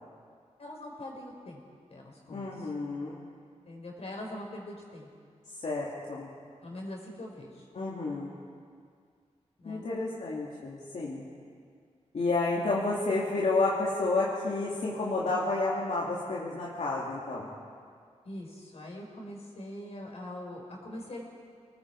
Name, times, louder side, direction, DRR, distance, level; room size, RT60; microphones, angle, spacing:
voice 1, 0.6-1.6 1.9-2.7 3.6-5.1 6.6-7.6 9.6-9.8 18.2-21.2, left 1 dB, 60° left, -1 dB, 5.1 m, -42 dB
voice 2, 2.3-3.3 5.6-6.3 7.7-8.3 9.6-11.2 12.1-17.5, left 3 dB, 75° left, -6 dB, 2.8 m, -30 dB
29.5 x 20.0 x 4.9 m, 2.2 s
wide cardioid pair, 135°, 12 cm